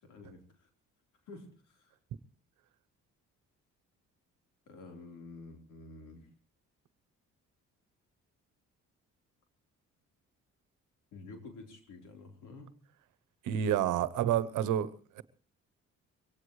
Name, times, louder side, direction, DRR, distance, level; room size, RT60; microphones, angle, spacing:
voice 1, 0.0-0.7 1.3-2.0 4.7-6.3 11.1-12.8, left 3 dB, 85° left, 3 dB, 4.2 m, -50 dB
voice 2, 13.4-15.2, right 10 dB, 85° right, 17 dB, 1.0 m, -29 dB
22.5 x 17.5 x 3.2 m, 0.38 s
cardioid pair, 90°, 30 cm